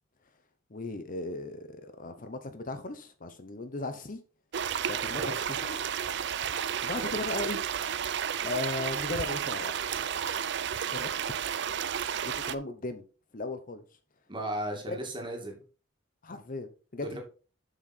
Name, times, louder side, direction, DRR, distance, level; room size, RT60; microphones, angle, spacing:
voice 1, 0.7-4.2 4.9-5.9 6.5-7.6 8.4-9.7 10.0-10.1 10.9-11.1 12.2-13.0 13.3-13.8 14.9-15.0 16.2-17.2, left 2 dB, 45° left, 0.9 m, -37 dB
sound 1, 4.5-12.5, right 8 dB, 60° right, 0.5 m, -32 dB
voice 2, 14.3-15.5 17.0-17.2, right 1 dB, 25° right, 2.4 m, -36 dB
8.0 x 6.2 x 4.3 m
head